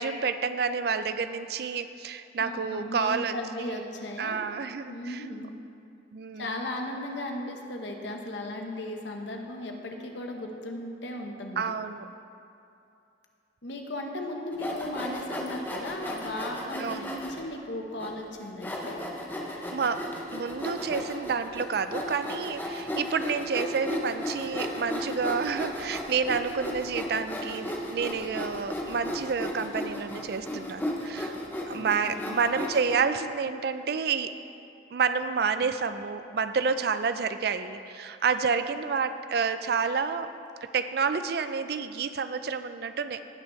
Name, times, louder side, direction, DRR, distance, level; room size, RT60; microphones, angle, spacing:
voice 1, 0.0-3.8 4.2-5.2 6.1-6.5 11.6-12.0 16.8-17.1 19.7-31.3 31.7-34.3 34.9-40.3 40.7-43.3, right 5 dB, 55° right, 11 dB, 0.4 m, -29 dB
voice 2, 2.4-4.4 4.9-5.5 6.4-11.7 13.6-19.0 31.7-32.3, left 1 dB, 80° left, 2 dB, 1.1 m, -36 dB
Sawing, 14.5-17.4 18.0-18.1 18.6-32.9, left 1 dB, 10° left, 0.8 m, -35 dB
17.5 x 6.2 x 3.2 m, 2.6 s
head